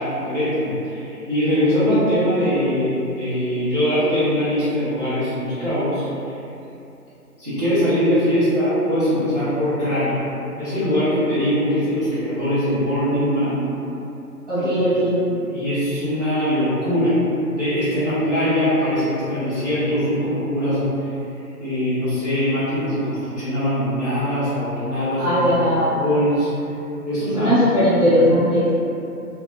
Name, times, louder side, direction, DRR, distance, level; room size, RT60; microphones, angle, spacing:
voice 1, 0.0-6.3 7.4-10.2 10.5-13.6 14.5-14.6 15.3-17.2 17.5-20.9 21.6-26.5 27.1-27.5 28.0-28.2, equal, 25° right, -17 dB, 0.6 m, -22 dB
voice 2, 14.5-15.2 25.2-26.0 27.3-28.7, equal, 10° right, -27 dB, 1.1 m, -18 dB
2.7 x 2.2 x 2.3 m, 2.8 s
figure-of-eight pair, 150°, 47 cm